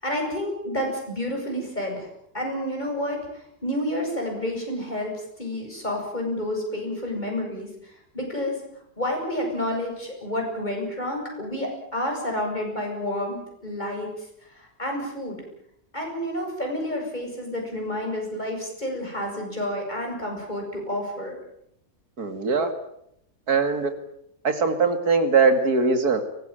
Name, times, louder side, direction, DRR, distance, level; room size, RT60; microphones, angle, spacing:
voice 1, 0.0-2.1 2.3-8.6 9.0-14.1 14.6-15.4 15.9-21.3, left 1 dB, 30° left, 1 dB, 8.2 m, -30 dB
voice 2, 22.2-22.7 23.5-23.9 24.4-26.2, right 4 dB, 80° right, 8 dB, 2.9 m, -21 dB
23.5 x 19.5 x 9.2 m, 0.75 s
omnidirectional pair, 1.6 m